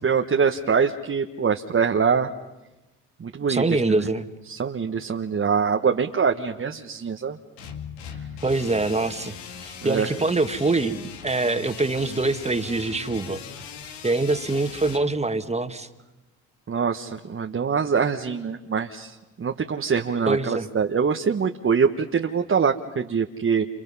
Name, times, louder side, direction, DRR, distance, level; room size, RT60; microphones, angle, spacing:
voice 1, 0.0-2.3 3.2-4.1 4.5-7.4 9.8-10.1 16.7-23.6, right 6 dB, 35° right, 4 dB, 1.4 m, -24 dB
voice 2, 3.5-4.3 8.4-9.3 9.6-13.4 14.0-15.9 20.3-20.7, right 3 dB, 15° right, 8 dB, 2.0 m, -24 dB
sound 1, 7.6-15.0, left 7 dB, 80° left, 2.3 m, -39 dB
29.5 x 29.5 x 5.7 m, 1.0 s
hypercardioid pair, 55°, 38 cm